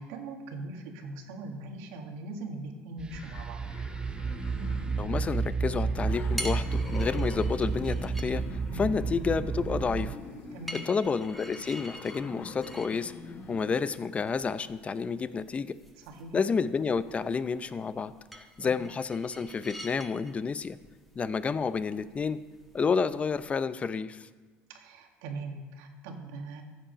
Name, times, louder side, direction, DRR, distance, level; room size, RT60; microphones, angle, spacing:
voice 1, 0.0-3.7 8.7-8.9 10.5-10.8 16.0-16.4 18.6-18.7 24.7-26.6, right 2 dB, 80° right, 3 dB, 1.8 m, -41 dB
sound 1, 3.0-10.1, right 4 dB, 20° right, 0.4 m, -31 dB
sound 2, 3.1-13.8, left 3 dB, 45° left, 2.1 m, -46 dB
voice 2, 5.0-10.2 10.7-13.1 13.5-15.8 16.3-20.8 21.2-22.4 22.7-24.3, left 5 dB, 25° left, 15 dB, 0.6 m, -30 dB
sound 3, 6.0-23.5, equal, ahead, 1.5 m, -47 dB
14.5 x 7.6 x 5.1 m, 1.4 s
supercardioid pair, 100°, 5 cm